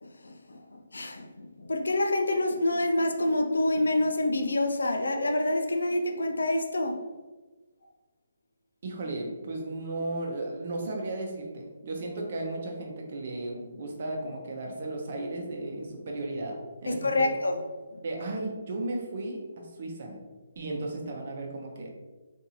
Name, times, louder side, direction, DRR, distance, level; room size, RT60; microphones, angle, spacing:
voice 1, 0.0-7.0 16.9-17.6 17.9-18.0, left 1 dB, 90° left, 4 dB, 0.4 m, -27 dB
voice 2, 8.8-17.4 18.0-20.2 20.6-21.9, right 2 dB, 50° right, 0 dB, 0.8 m, -35 dB
3.6 x 2.6 x 2.8 m, 1.3 s
hypercardioid pair, 155°, 0 cm